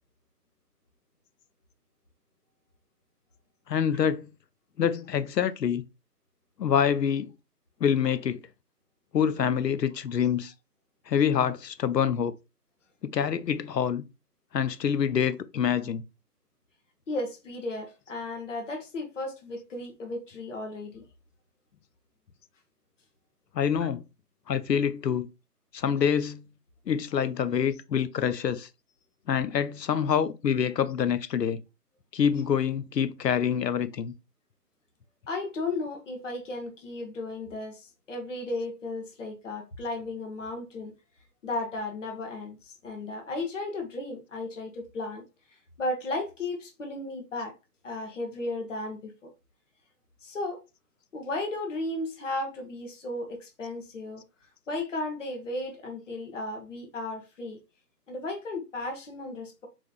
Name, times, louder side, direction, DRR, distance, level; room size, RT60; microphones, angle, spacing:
voice 1, 3.7-4.3 4.8-5.8 6.6-7.3 7.8-8.4 9.1-10.5 11.1-12.3 13.0-14.0 14.5-16.0 23.5-24.0 24.5-25.3 25.7-26.5 26.9-28.7 29.3-31.6 32.1-34.1, left 8 dB, 90° left, 0.6 m, -26 dB
voice 2, 17.1-21.0 23.8-23.9 35.3-40.9 41.4-45.2 45.8-47.5 47.8-49.3 50.2-50.6 51.1-54.2 54.7-57.6 58.1-59.7, left 2 dB, 50° left, 1.0 m, -34 dB
4.0 x 3.0 x 2.4 m
figure-of-eight pair, 150°, 48 cm